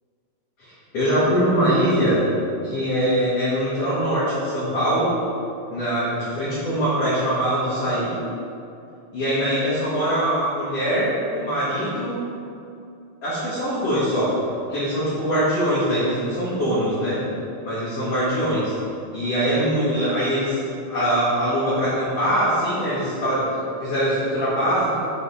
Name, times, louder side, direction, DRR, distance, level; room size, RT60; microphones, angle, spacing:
voice 1, 0.6-2.2 2.6-5.1 5.7-8.1 9.1-12.1 13.2-14.3 14.7-17.2 17.6-18.6 19.1-23.4 23.8-25.0, equal, 50° left, -12 dB, 2.4 m, -22 dB
8.3 x 3.8 x 5.6 m, 2.6 s
omnidirectional pair, 4.2 m